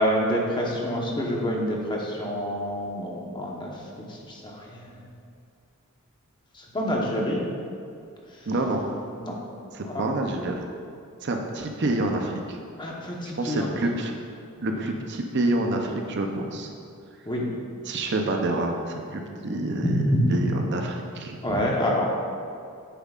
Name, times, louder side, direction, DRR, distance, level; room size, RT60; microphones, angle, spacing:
voice 1, 0.0-3.7 4.3-5.0 6.7-7.4 9.2-9.4 9.9-10.0 12.8-13.7 17.2-17.5 19.8-20.5 21.4-22.1, equal, 20° left, -2 dB, 1.0 m, -26 dB
voice 2, 8.5-8.8 9.7-10.7 11.2-12.6 13.4-14.1 14.6-16.7 17.9-20.0 20.3-21.4, right 2 dB, 55° right, 3 dB, 0.6 m, -27 dB
9.3 x 7.2 x 2.4 m, 2.4 s
head